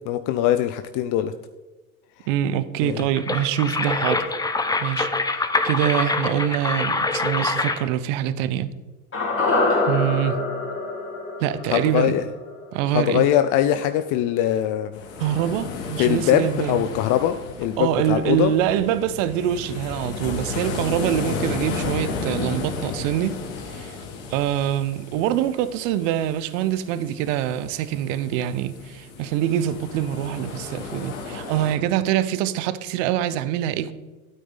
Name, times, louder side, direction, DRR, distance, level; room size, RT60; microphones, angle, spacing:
voice 1, 0.0-1.3 2.8-3.0 11.7-12.2 12.9-14.9 16.0-18.5, left 12 dB, 45° left, 0.6 m, -22 dB
voice 2, 2.3-4.2 4.8-8.7 9.9-10.4 11.4-12.2 12.7-13.3 15.2-16.8 17.8-23.4 23.7-24.0 24.3-33.9, right 11 dB, 60° right, 0.9 m, -24 dB
sound 1, 3.0-7.9, left 3 dB, 10° left, 0.9 m, -25 dB
sound 2, 9.1-13.4 13.7-13.8, left 3 dB, 30° left, 2.8 m, -25 dB
sound 3, 14.9-31.8, left 4 dB, 65° left, 2.4 m, -33 dB
12.5 x 9.2 x 4.0 m
hypercardioid pair, 80°, 44 cm